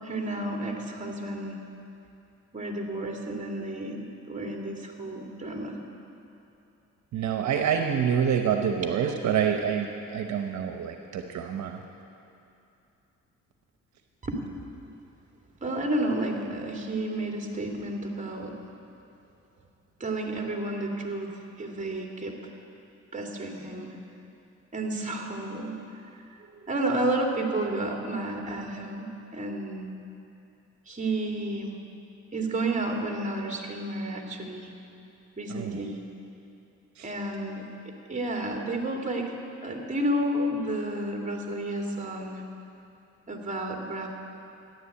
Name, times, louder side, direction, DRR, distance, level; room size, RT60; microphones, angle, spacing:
voice 1, 0.0-1.6 2.5-5.8 8.8-8.9 14.2-14.7 15.6-18.6 20.0-22.5 23.1-23.9 24.7-25.8 26.6-29.9 30.9-31.7 32.3-34.7 35.4-36.0 37.0-37.7 38.1-39.4 39.6-42.4 43.3-44.1, right 1 dB, 25° right, 0 dB, 2.6 m, -31 dB
voice 2, 7.1-11.8 35.5-35.8 37.0-37.1, right 8 dB, 70° right, 4 dB, 1.0 m, -27 dB
14.5 x 10.5 x 8.5 m, 2.7 s
cardioid pair, 90°, 30 cm